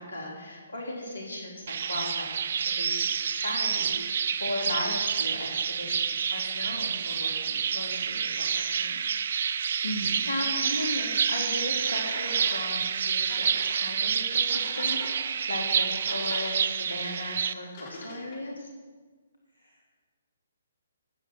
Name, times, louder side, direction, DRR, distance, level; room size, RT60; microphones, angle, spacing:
voice 1, 0.0-9.2 10.3-18.7, left 1 dB, 70° left, -1 dB, 3.7 m, -37 dB
sound 1, 1.7-17.5, right 7 dB, 50° right, 0.5 m, -28 dB
voice 2, 9.7-10.3 19.5-19.9, equal, 90° left, -1 dB, 1.6 m, -36 dB
sound 2, 10.6-10.7 11.9-12.6 13.3-13.8 14.5-15.2 15.8-16.5 17.7-18.4, left 2 dB, 35° left, 3.4 m, -43 dB
16.5 x 6.7 x 5.8 m, 1.4 s
figure-of-eight pair, 130°, 0 cm